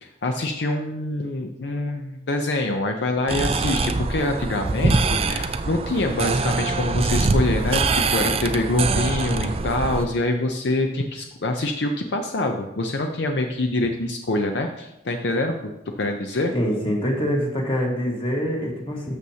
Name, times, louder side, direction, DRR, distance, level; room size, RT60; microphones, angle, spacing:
voice 1, 0.0-15.7 16.0-16.5, left 2 dB, 65° left, 4 dB, 0.6 m, -25 dB
sound 1, 3.3-10.1, right 3 dB, 30° right, 0.4 m, -23 dB
voice 2, 16.5-19.2, equal, 30° left, -1 dB, 1.6 m, -25 dB
12.5 x 7.0 x 2.8 m, 0.90 s
head